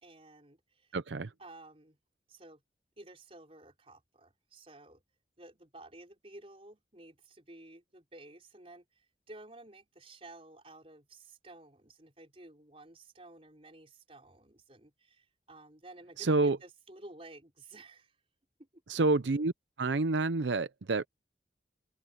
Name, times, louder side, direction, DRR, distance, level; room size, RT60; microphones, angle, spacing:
voice 1, 0.0-1.0 1.4-2.0 2.3-2.6 3.0-5.0 5.4-18.2 18.6-18.7, right 2 dB, 35° right, 5.0 m, -53 dB
voice 2, 0.9-1.3 16.2-16.6 18.9-19.5 19.8-21.1, right 3 dB, 85° right, 0.6 m, -28 dB
open air
head